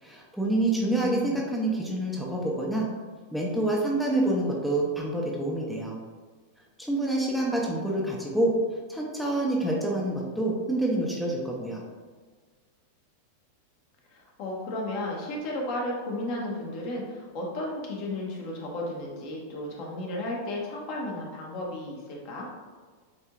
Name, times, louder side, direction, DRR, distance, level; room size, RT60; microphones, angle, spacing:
voice 1, 0.0-2.9 3.3-6.0 6.8-8.6 8.9-11.8, right 1 dB, ahead, -3 dB, 0.7 m, -27 dB
voice 2, 0.8-1.4 14.1-22.5, left 1 dB, 45° left, -2 dB, 1.1 m, -34 dB
7.5 x 2.7 x 2.5 m, 1.5 s
figure-of-eight pair, 90°, 0 cm